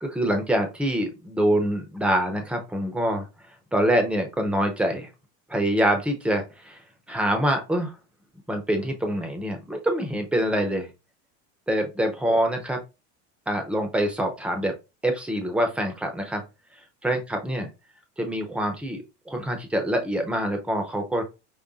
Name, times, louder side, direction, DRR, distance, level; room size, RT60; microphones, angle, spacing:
voice 1, 0.0-3.3 3.7-5.1 5.5-6.8 7.1-7.9 8.5-10.9 11.7-12.8 13.5-14.7 15.0-16.4 17.0-17.7 18.2-21.2, right 1 dB, 5° right, 4 dB, 0.7 m, -25 dB
5.5 x 2.1 x 3.6 m, 0.27 s
cardioid pair, 150°, 33 cm